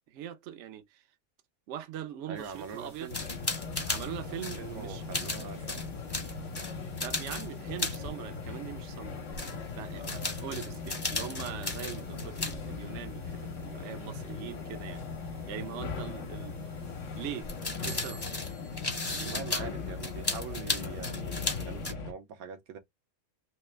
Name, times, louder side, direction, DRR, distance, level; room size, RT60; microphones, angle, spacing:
voice 1, 0.1-1.0 1.7-3.1 3.9-5.0 6.7-16.8 17.1-18.2 19.0-19.4, right 10 dB, 60° right, 0.9 m, -42 dB
voice 2, 2.3-3.2 4.2-5.9 19.2-22.8, right 6 dB, 80° right, 1.2 m, -43 dB
sound 1, 2.4-9.0 9.3-12.6 12.9-13.0 14.8-14.9 17.4-21.9, left 2 dB, 20° left, 0.8 m, -36 dB
sound 2, 3.1-22.1, left 4 dB, 60° left, 1.2 m, -39 dB
3.2 x 2.8 x 3.2 m
omnidirectional pair, 1.5 m